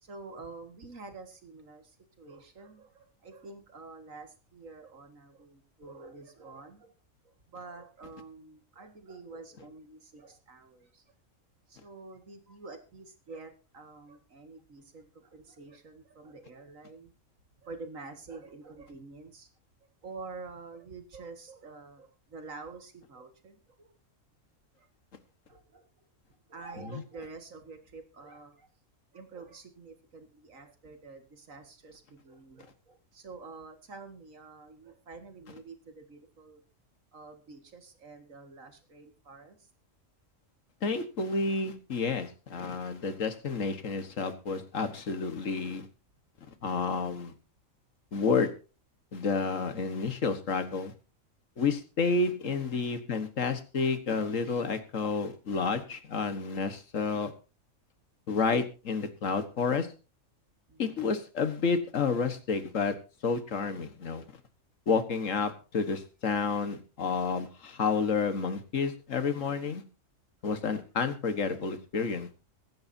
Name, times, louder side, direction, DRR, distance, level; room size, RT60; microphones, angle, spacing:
voice 1, 0.0-6.9 7.2-11.0 11.7-17.1 17.6-19.5 20.0-23.9 24.8-24.9 25.5-25.9 26.5-28.7 29.1-36.6 37.1-39.7 60.7-61.1 70.4-70.7, right 3 dB, 80° right, 6 dB, 2.3 m, -48 dB
voice 2, 40.8-45.9 46.6-47.3 48.1-48.5 49.1-50.9 51.6-57.3 58.3-59.9 60.8-62.9 63.2-64.2 64.9-69.8 70.4-72.3, left 4 dB, 75° left, 10 dB, 1.8 m, -30 dB
22.5 x 10.5 x 2.8 m, 0.33 s
omnidirectional pair, 1.3 m